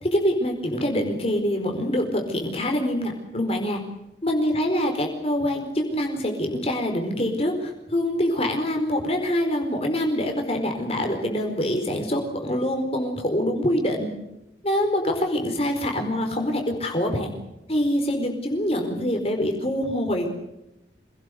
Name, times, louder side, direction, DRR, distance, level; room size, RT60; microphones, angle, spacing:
voice 1, 0.0-3.8 4.2-14.1 14.6-17.3 17.7-20.3, left 1 dB, 35° left, 3 dB, 4.5 m, -25 dB
27.0 x 19.0 x 8.2 m, 0.89 s
head